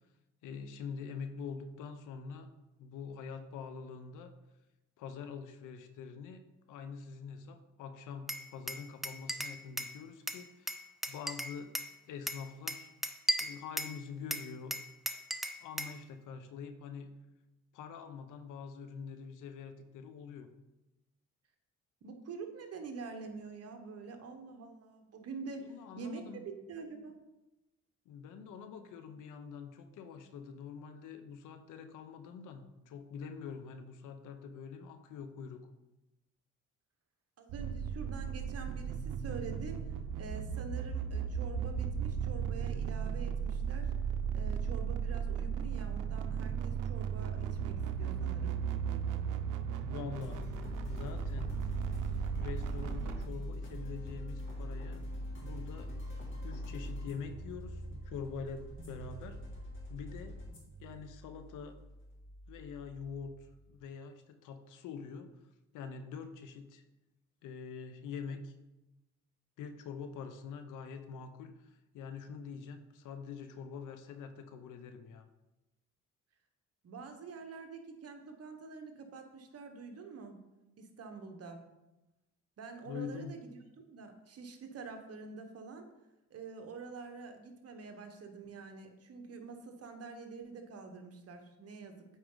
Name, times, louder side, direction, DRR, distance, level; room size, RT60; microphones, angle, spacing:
voice 1, 0.4-2.5 2.8-4.3 5.0-6.4 6.7-11.7 12.1-12.9 13.4-14.8 15.6-17.1 17.7-20.5 25.6-26.5 28.1-35.6 49.9-50.5 50.9-51.5 52.4-55.0 55.4-55.9 56.4-59.4 59.9-60.4 60.8-61.8 62.5-63.3 63.7-65.3 65.7-66.8 67.4-68.5 69.6-75.3 82.9-83.4, left 6 dB, 85° left, 9 dB, 0.8 m, -45 dB
Glass, 8.3-10.0 10.3-11.9 12.3-14.0 14.3-16.0, equal, ahead, 0.5 m, -36 dB
voice 2, 22.0-27.1 37.4-43.9 44.3-48.6 76.8-80.3 80.8-81.6 82.6-83.6 83.9-85.9 86.3-92.1, right 4 dB, 55° right, 5 dB, 1.2 m, -46 dB
sound 1, 37.5-53.3, right 7 dB, 90° right, 0.6 m, -36 dB
sound 2, 50.2-63.6, left 1 dB, 40° left, 2.4 m, -43 dB
8.3 x 4.8 x 3.9 m, 0.99 s
cardioid pair, 90°, 30 cm